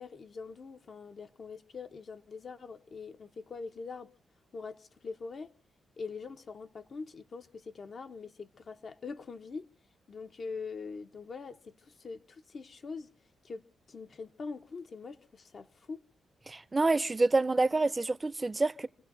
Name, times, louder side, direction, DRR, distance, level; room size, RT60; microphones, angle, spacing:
voice 1, 0.0-4.1 4.5-5.5 6.0-9.7 10.1-13.1 13.4-16.0, left 4 dB, 50° left, 0.9 m, -43 dB
voice 2, 16.5-18.9, right 3 dB, 25° right, 0.7 m, -27 dB
28.0 x 16.0 x 2.7 m
cardioid pair, 75°, 0 cm